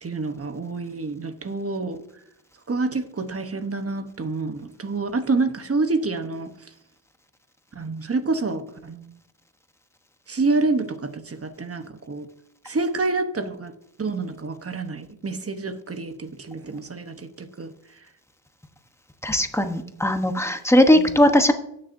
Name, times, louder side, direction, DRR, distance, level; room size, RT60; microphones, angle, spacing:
voice 1, 0.0-2.0 2.7-6.5 7.7-9.2 10.3-12.3 12.6-13.7 14.0-17.7 20.9-21.2, right 3 dB, 30° right, 1.0 m, -27 dB
voice 2, 19.2-21.5, left 1 dB, 5° left, 1.0 m, -18 dB
16.5 x 6.6 x 2.7 m
cardioid pair, 85°, 47 cm